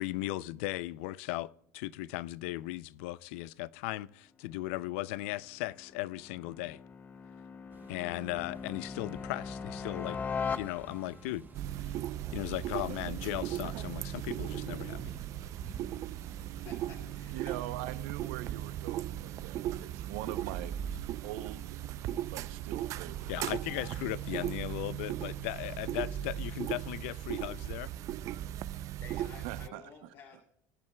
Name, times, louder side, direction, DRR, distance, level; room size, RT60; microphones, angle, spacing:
voice 1, 0.0-6.8 7.9-10.2 10.5-11.5 12.3-15.1 23.3-27.9, left 17 dB, 85° left, 0.4 m, -37 dB
sound 1, 4.9-11.3, left 6 dB, 25° left, 0.6 m, -40 dB
sound 2, 7.7-25.8, right 5 dB, 30° right, 0.7 m, -52 dB
sound 3, 11.5-29.7, right 12 dB, 55° right, 0.4 m, -37 dB
voice 2, 16.4-17.6 29.0-30.4, left 5 dB, 70° left, 2.7 m, -52 dB
voice 3, 17.3-20.7 21.2-21.8 22.2-23.5 29.1-29.9, right 14 dB, 80° right, 0.7 m, -43 dB
20.0 x 10.5 x 2.3 m
supercardioid pair, 115°, 7 cm